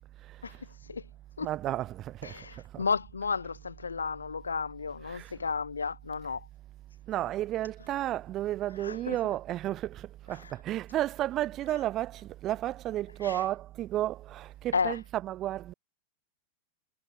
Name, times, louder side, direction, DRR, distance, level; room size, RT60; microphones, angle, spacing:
voice 1, 1.4-2.4 2.7-2.8 5.1-5.3 7.1-15.7, right 14 dB, 35° right, 4.1 m, -32 dB
voice 2, 2.2-6.5 8.8-9.2 13.2-13.4 14.7-15.0, left 5 dB, 75° left, 2.1 m, -32 dB
figure-of-eight pair, 90°, 0 cm